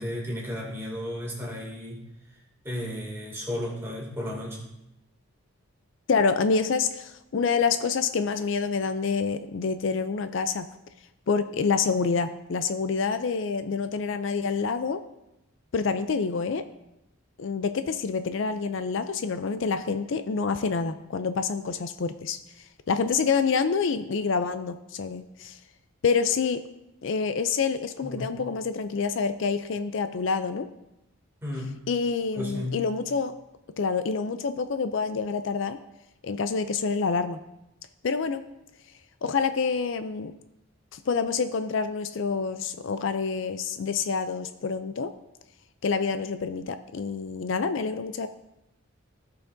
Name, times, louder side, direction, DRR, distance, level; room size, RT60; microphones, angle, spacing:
voice 1, 0.0-2.0 2.6-4.7 28.0-28.3 31.4-31.7 32.3-32.8, left 1 dB, 10° right, -4 dB, 2.4 m, -33 dB
voice 2, 6.1-10.6 11.3-15.0 15.7-16.6 17.4-25.6 26.0-26.6 27.0-30.7 31.9-33.3 33.8-35.8 36.2-37.4 38.0-38.4 39.2-40.3 40.9-45.1 45.8-48.3, left 5 dB, 60° left, 10 dB, 0.4 m, -27 dB
16.5 x 5.7 x 2.6 m, 0.89 s
head